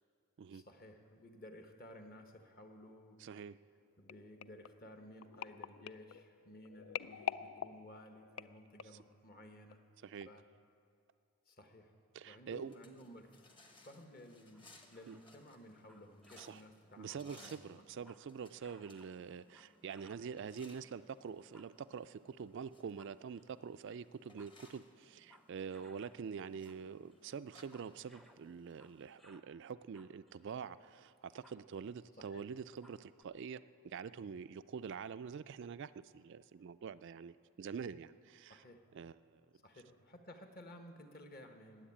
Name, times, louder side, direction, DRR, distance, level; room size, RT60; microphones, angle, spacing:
voice 1, 0.5-3.2 4.0-9.8 10.2-10.4 11.5-11.9 12.2-13.5 13.8-17.8 32.2-32.4 38.5-38.8 39.6-41.9, left 1 dB, 40° left, 5 dB, 1.3 m, -55 dB
voice 2, 3.2-3.6 10.0-10.3 12.1-12.7 15.1-15.2 16.4-16.6 17.0-38.6 38.9-39.4, right 6 dB, 55° right, 13 dB, 0.3 m, -46 dB
sound 1, 4.1-9.1 9.7-9.9 10.2-10.3, left 9 dB, 65° left, 0.3 m, -46 dB
sound 2, 12.5-29.2, left 2 dB, 20° left, 1.0 m, -65 dB
sound 3, 14.5-15.3 15.7-16.6 16.9-18.3 18.6-20.3 21.3-22.1 22.7-23.5 24.1-26.2 26.5-26.9 27.1-29.6 29.8-31.9 32.2-32.3 32.6-33.2, equal, ahead, 0.6 m, -65 dB
20.5 x 7.9 x 8.7 m, 2.4 s
head